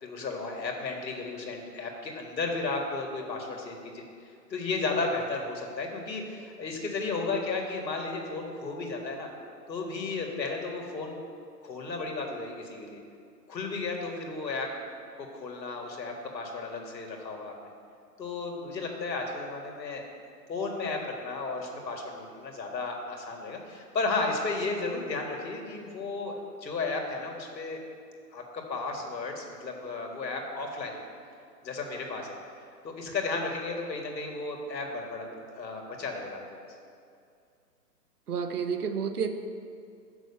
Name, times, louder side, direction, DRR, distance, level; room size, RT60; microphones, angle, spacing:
voice 1, 0.0-4.0 4.5-9.3 9.7-11.2 11.6-13.0 13.5-14.7 15.2-17.5 18.2-20.0 20.5-27.8 28.3-31.0 31.6-32.4 32.8-36.4, left 3 dB, 85° left, 1 dB, 1.9 m, -34 dB
voice 2, 38.3-39.3, right 6 dB, 65° right, 7 dB, 0.9 m, -30 dB
6.9 x 6.1 x 6.6 m, 2.4 s
hypercardioid pair, 170°, 50 cm